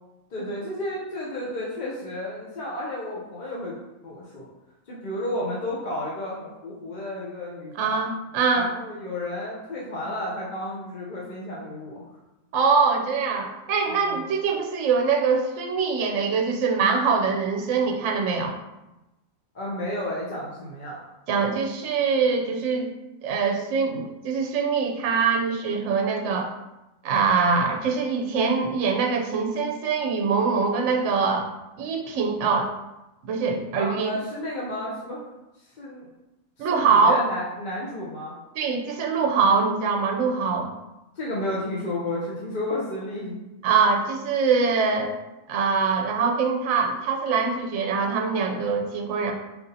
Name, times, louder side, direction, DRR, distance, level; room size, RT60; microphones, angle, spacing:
voice 1, 0.3-3.7 4.0-4.5 4.9-8.0 8.5-12.0 13.9-14.2 19.5-21.0 33.7-35.2 35.8-36.1 36.6-38.3 41.2-43.4, left 1 dB, 45° left, -6 dB, 0.7 m, -32 dB
voice 2, 7.8-8.7 12.5-18.5 21.3-22.9 23.2-26.5 27.0-31.5 31.8-32.7 33.2-34.1 36.6-37.2 38.6-40.7 43.6-45.1 45.5-49.3, right 5 dB, 70° right, 2 dB, 0.9 m, -23 dB
4.4 x 2.7 x 3.9 m, 1.0 s
omnidirectional pair, 1.4 m